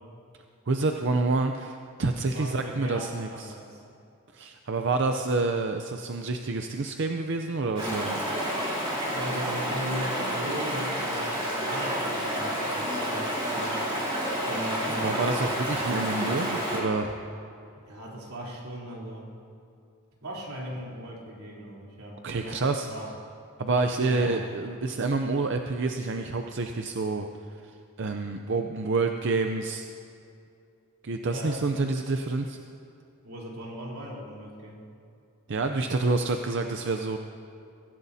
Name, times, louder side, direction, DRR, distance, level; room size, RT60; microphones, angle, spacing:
voice 1, 0.7-3.5 4.3-8.2 15.0-17.2 22.2-22.9 23.6-27.3 28.0-29.9 31.0-32.6 35.5-37.2, right 3 dB, 55° right, 5 dB, 0.6 m, -28 dB
voice 2, 2.3-3.8 9.2-13.8 14.4-15.2 17.8-19.3 20.2-22.6 22.9-23.1 24.0-24.5 31.3-31.6 33.2-34.8, right 1 dB, 85° right, -4 dB, 3.5 m, -38 dB
Stream, 7.7-16.8, equal, 25° right, 3.3 m, -29 dB
23.0 x 15.5 x 2.8 m, 2.5 s
head